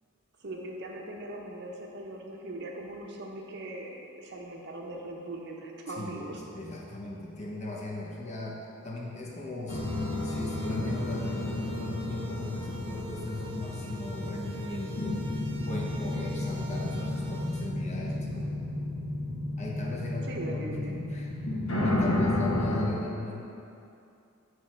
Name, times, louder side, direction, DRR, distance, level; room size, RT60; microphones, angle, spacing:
voice 1, 0.4-6.4 20.2-21.1, right 1 dB, 55° right, 0 dB, 0.7 m, -40 dB
voice 2, 5.9-15.3 15.7-18.6 19.6-21.3 21.8-23.4, left 2 dB, 35° left, -2 dB, 0.7 m, -38 dB
sound 1, 9.7-22.9, left 1 dB, 90° left, 0.9 m, -32 dB
sound 2, 9.7-17.7, right 2 dB, 25° right, 0.4 m, -47 dB
7.9 x 3.0 x 4.3 m, 2.7 s
head